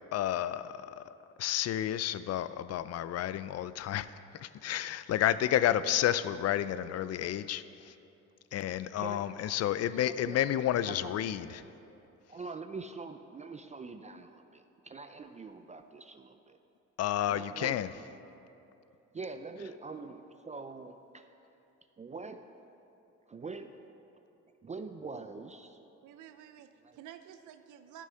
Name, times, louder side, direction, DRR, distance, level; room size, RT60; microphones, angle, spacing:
voice 1, 0.1-4.1 4.4-7.9 8.5-11.6 17.0-17.9, left 11 dB, 55° left, 15 dB, 0.4 m, -31 dB
voice 2, 9.0-9.5 9.9-10.5 10.9-11.1 12.3-16.6 17.3-17.8 19.1-21.3 22.0-22.4 23.3-23.7 24.6-25.8 26.8-27.0, right 4 dB, 25° right, 8 dB, 0.4 m, -44 dB
voice 3, 26.0-28.1, right 10 dB, 85° right, 9 dB, 0.6 m, -51 dB
11.0 x 6.2 x 5.6 m, 2.9 s
cardioid pair, 90°, 30 cm